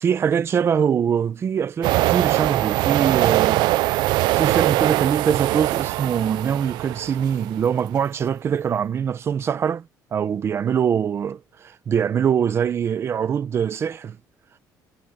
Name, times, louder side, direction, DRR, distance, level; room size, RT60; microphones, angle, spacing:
voice 1, 0.0-3.7 4.3-9.8 10.1-14.2, right 7 dB, 35° right, 1.0 m, -23 dB
sound 1, 1.8-7.6, right 18 dB, 80° right, 0.5 m, -22 dB
cardioid pair, 150°, 7 cm